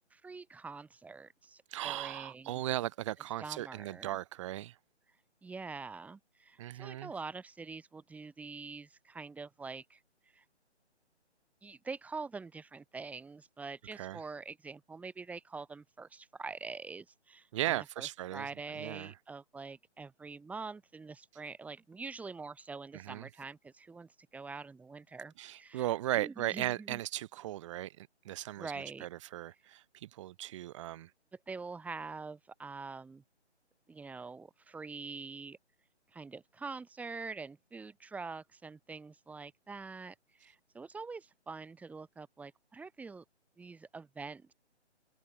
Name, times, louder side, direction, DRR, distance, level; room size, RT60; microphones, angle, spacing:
voice 1, 0.1-2.5 3.4-4.2 5.4-10.0 10.3-10.4 11.6-25.9 26.1-27.0 28.6-29.1 31.5-33.2 33.9-35.6 36.1-43.2 43.6-44.5, right 4 dB, 5° right, 7.5 m, -45 dB
voice 2, 1.7-4.8 6.6-7.1 13.9-14.2 17.5-19.1 22.9-23.3 25.4-28.7 29.0-31.1, right 14 dB, 25° right, 6.0 m, -37 dB
figure-of-eight pair, 155°, 35 cm